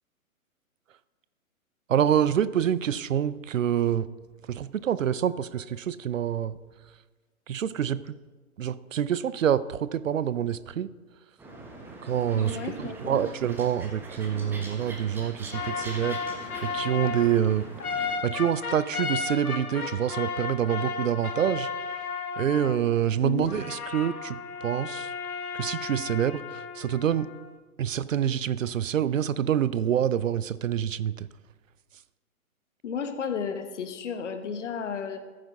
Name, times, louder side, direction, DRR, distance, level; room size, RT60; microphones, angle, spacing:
voice 1, 1.9-4.1 4.5-6.6 7.5-8.0 8.6-10.9 12.0-21.7 22.4-25.1 25.5-27.3 27.8-31.3, right 9 dB, 60° right, 17 dB, 0.6 m, -27 dB
sound 1, 11.4-18.2, right 2 dB, 5° right, 1.0 m, -42 dB
voice 2, 12.3-13.3 23.2-23.5 32.8-35.2, left 6 dB, 55° left, 9 dB, 1.3 m, -33 dB
sound 2, 15.5-23.0 23.5-27.5, left 5 dB, 85° left, 1.1 m, -34 dB
14.5 x 9.6 x 3.6 m, 1.3 s
figure-of-eight pair, 130°, 44 cm